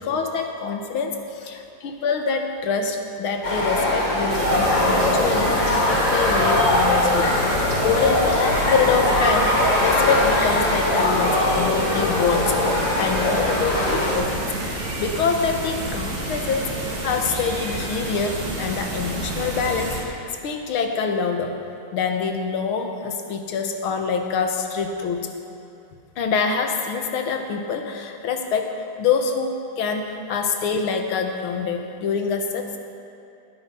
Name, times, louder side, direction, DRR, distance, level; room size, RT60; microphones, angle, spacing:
voice 1, 0.0-5.5 5.9-7.5 7.8-9.5 9.8-14.4 15.0-20.2 20.4-21.5 21.9-25.3 26.2-32.8, left 5 dB, 90° left, 5 dB, 1.9 m, -25 dB
sound 1, 3.4-14.1, left 1 dB, 65° left, 3.2 m, -21 dB
sound 2, 4.3-20.0, right 1 dB, 85° right, 3.0 m, -30 dB
19.0 x 9.0 x 5.6 m, 2.7 s
omnidirectional pair, 2.2 m